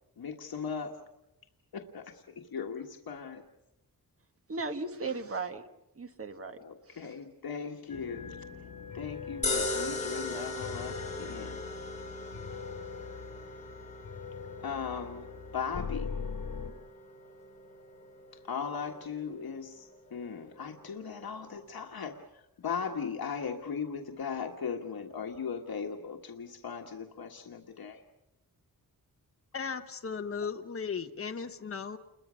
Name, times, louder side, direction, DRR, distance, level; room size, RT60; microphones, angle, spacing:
voice 1, 0.2-1.0 1.7-3.4 6.6-8.4 8.9-11.6 14.6-16.1 18.4-28.0, left 6 dB, 75° left, 2 dB, 1.6 m, -38 dB
voice 2, 4.5-5.7 5.9-6.6 6.9-7.2, right 3 dB, 40° right, 7 dB, 1.5 m, -37 dB
sound 1, 7.9-16.7, left 6 dB, 60° left, 4.2 m, -42 dB
sound 2, 9.4-21.8, left 2 dB, 20° left, 4.0 m, -40 dB
voice 3, 29.5-32.0, left 5 dB, 35° left, 6 dB, 1.1 m, -36 dB
29.5 x 22.0 x 6.3 m, 0.90 s
wide cardioid pair, 155°, 37 cm